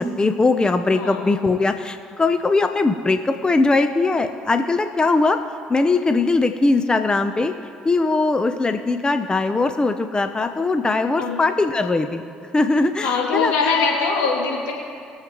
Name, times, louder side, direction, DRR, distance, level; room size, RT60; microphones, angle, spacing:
voice 1, 0.0-5.4 5.7-7.5 7.8-12.2 12.5-13.7, left 3 dB, 20° left, 8 dB, 0.7 m, -20 dB
voice 2, 13.0-14.7, left 4 dB, 80° left, -3 dB, 2.7 m, -22 dB
22.0 x 7.5 x 3.1 m, 2.4 s
hypercardioid pair, 55°, 4 cm